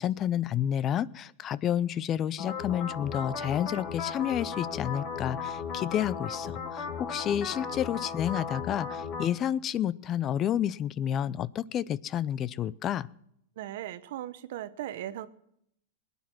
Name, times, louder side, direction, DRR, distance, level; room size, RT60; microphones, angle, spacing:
voice 1, 0.0-13.1, left 10 dB, 35° left, 20 dB, 0.5 m, -30 dB
sound 1, 2.4-9.2, left 5 dB, 50° left, 4.1 m, -36 dB
voice 2, 13.6-15.3, right 12 dB, 65° right, 14 dB, 0.9 m, -38 dB
20.5 x 9.7 x 6.1 m, 0.74 s
hypercardioid pair, 110°, 0 cm